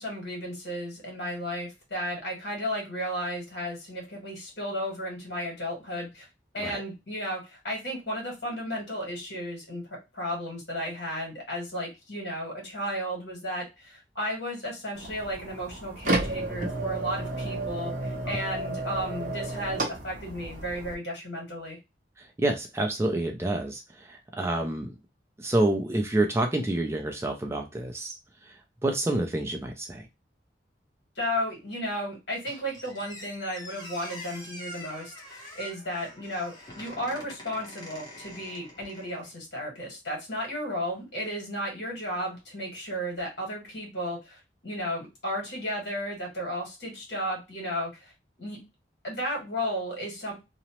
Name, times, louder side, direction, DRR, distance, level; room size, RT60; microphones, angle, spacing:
voice 1, 0.0-6.3 6.5-9.8 10.1-21.8 31.1-48.1 48.4-48.6 49.0-50.3, equal, 65° left, -1 dB, 1.6 m, -34 dB
sound 1, 14.9-20.9, right 2 dB, 45° right, 0.7 m, -32 dB
voice 2, 22.2-25.0 25.4-28.2 28.4-30.1, right 1 dB, 15° right, 3 dB, 0.3 m, -28 dB
Squeak, 32.5-39.3, equal, 20° left, 0.9 m, -45 dB
2.8 x 2.0 x 2.9 m, 0.24 s
head